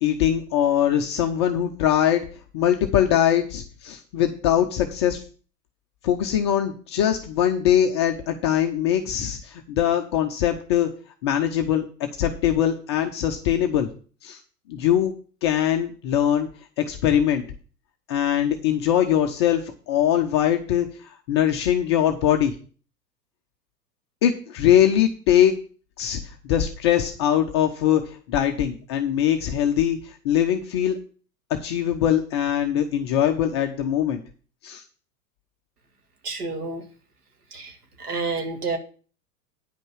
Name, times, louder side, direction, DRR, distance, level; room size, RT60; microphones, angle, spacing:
voice 1, 0.0-2.2 2.5-5.2 6.0-10.9 11.2-13.9 14.2-14.4 14.7-15.1 15.4-16.5 16.8-17.4 18.1-22.6 24.2-25.6 26.0-31.0 31.6-34.2 34.6-34.8, left 10 dB, 20° left, 4 dB, 0.3 m, -22 dB
voice 2, 36.2-36.8 37.5-38.8, right 3 dB, 65° right, 5 dB, 2.0 m, -29 dB
9.3 x 5.3 x 7.0 m, 0.40 s
figure-of-eight pair, 95°, 49 cm